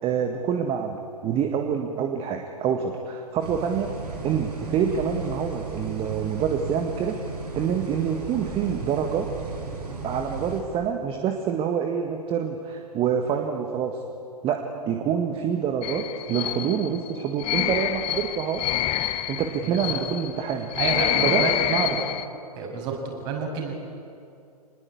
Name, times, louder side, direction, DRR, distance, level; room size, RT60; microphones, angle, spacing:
voice 1, 0.0-4.0 4.2-7.2 7.5-9.3 10.0-14.0 14.4-18.8 19.3-20.7 21.2-22.0, right 7 dB, 25° right, 3 dB, 1.8 m, -26 dB
sound 1, 3.4-10.6, right 3 dB, 75° right, 5.6 m, -35 dB
sound 2, 15.8-22.3, left 13 dB, 30° left, 1.0 m, -27 dB
voice 2, 19.6-20.0 20.8-21.5 21.8-22.0 22.6-23.7, right 5 dB, 40° right, 1 dB, 6.9 m, -29 dB
26.0 x 20.5 x 8.6 m, 2.5 s
figure-of-eight pair, 110°, 20 cm